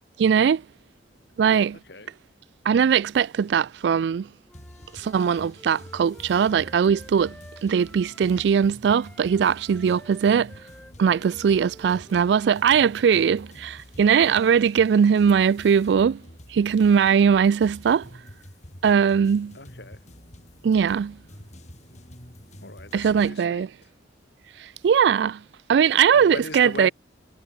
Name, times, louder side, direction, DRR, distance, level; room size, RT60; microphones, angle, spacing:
voice 1, 0.2-0.6 1.4-1.8 2.7-4.3 4.9-7.3 7.6-10.5 11.0-16.2 16.5-18.1 18.8-19.5 20.6-21.2 22.9-23.7 24.6-25.4 25.7-26.9, right 7 dB, 70° right, 0.3 m, -20 dB
voice 2, 1.7-2.1 19.5-20.0 22.6-23.7 26.1-26.9, left 3 dB, 65° left, 2.5 m, -39 dB
sound 1, 4.5-23.3, equal, 40° left, 6.0 m, -47 dB
Wind instrument woodwind instrument, 4.5-8.5 8.8-13.1, left 1 dB, 5° left, 3.7 m, -51 dB
head